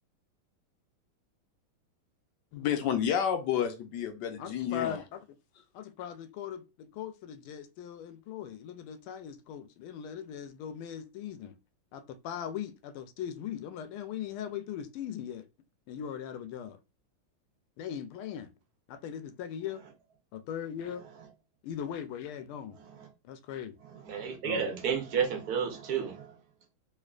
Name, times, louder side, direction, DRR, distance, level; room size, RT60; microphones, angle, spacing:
voice 1, 2.5-5.0, left 9 dB, 70° left, 1.1 m, -30 dB
voice 2, 4.4-5.2 5.7-11.6 11.9-15.5 15.9-16.8 17.8-18.5 18.9-19.8 20.3-21.0 21.6-22.8 23.2-23.8 24.4-24.7, left 9 dB, 85° left, 1.5 m, -39 dB
voice 3, 23.8-26.4, right 7 dB, 55° right, 1.2 m, -32 dB
3.6 x 3.2 x 2.3 m
omnidirectional pair, 2.3 m